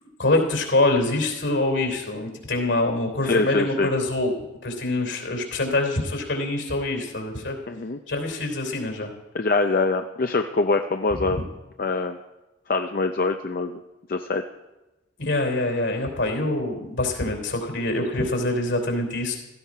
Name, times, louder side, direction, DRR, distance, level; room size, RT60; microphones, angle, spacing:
voice 1, 0.2-7.6 8.1-9.1 11.3-11.4 15.2-19.4, left 2 dB, 70° left, 4 dB, 3.2 m, -25 dB
voice 2, 3.2-3.9 7.7-8.0 9.3-11.4 11.8-12.2 12.7-13.8 14.1-14.4, left 3 dB, 50° left, 6 dB, 0.5 m, -24 dB
16.0 x 14.5 x 4.8 m, 1.0 s
head